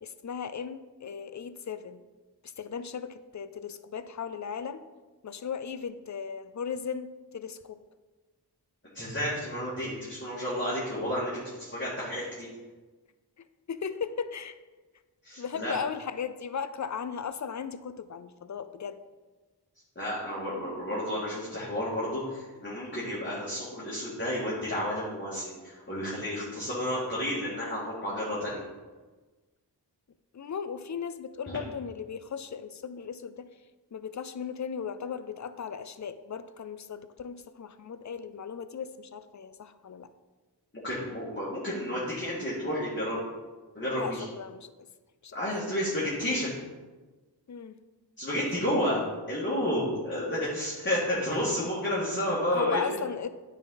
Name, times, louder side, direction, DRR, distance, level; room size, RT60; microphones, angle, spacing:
voice 1, 0.0-2.0 2.4-4.8 5.2-7.8 13.7-14.6 15.4-19.0 30.3-33.5 33.9-40.1 43.9-44.7 45.2-45.4 47.5-47.7 52.5-53.3, left 6 dB, 45° left, 13 dB, 0.5 m, -36 dB
voice 2, 8.9-12.5 15.2-15.8 20.0-28.6 40.8-43.2 43.8-44.2 45.3-46.5 48.2-49.0 49.3-52.8, left 1 dB, 25° left, -8 dB, 1.9 m, -31 dB
9.4 x 4.2 x 3.9 m, 1.3 s
wide cardioid pair, 50°, 41 cm